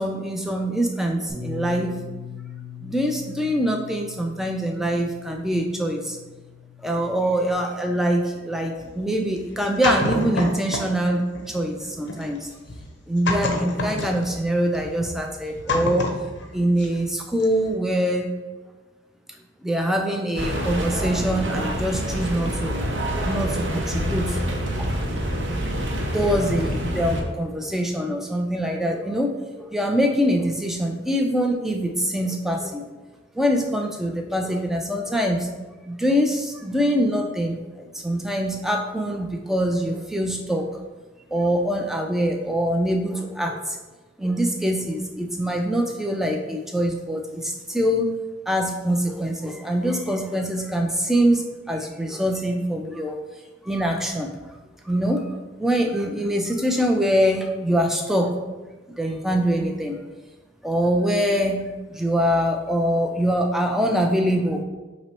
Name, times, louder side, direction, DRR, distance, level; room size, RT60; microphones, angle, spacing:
voice 1, 0.0-2.0 2.8-6.2 6.8-12.5 13.1-16.1 16.5-18.3 19.6-22.7 23.2-24.4 24.8-24.9 25.8-32.8 33.3-35.5 35.9-40.7 41.3-43.8 44.2-53.2 53.6-54.3 54.8-58.4 59.0-60.0 60.6-61.6 61.9-64.6, equal, ahead, 2 dB, 0.4 m, -24 dB
Bass guitar, 1.3-7.5, left 7 dB, 35° right, 1.0 m, -40 dB
sound 1, 8.8-11.0 11.3-17.1 17.4-17.7, left 2 dB, 60° left, 0.6 m, -29 dB
sound 2, 20.4-27.2, equal, 60° right, 0.6 m, -26 dB
5.8 x 2.0 x 4.3 m, 1.2 s
head